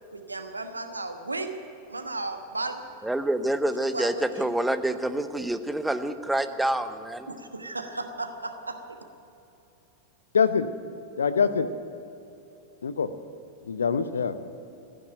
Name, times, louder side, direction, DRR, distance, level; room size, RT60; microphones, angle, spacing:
voice 1, 0.1-1.5 1.9-2.8 3.9-4.5 7.3-8.8, right 2 dB, 80° right, 7 dB, 1.2 m, -34 dB
voice 2, 3.0-7.3, right 1 dB, 5° right, 11 dB, 0.8 m, -27 dB
voice 3, 10.3-10.7 11.2-11.7 12.8-13.1 13.7-14.5, left 6 dB, 70° left, 12 dB, 0.7 m, -24 dB
15.0 x 10.0 x 9.1 m, 2.9 s
figure-of-eight pair, 90°, 0 cm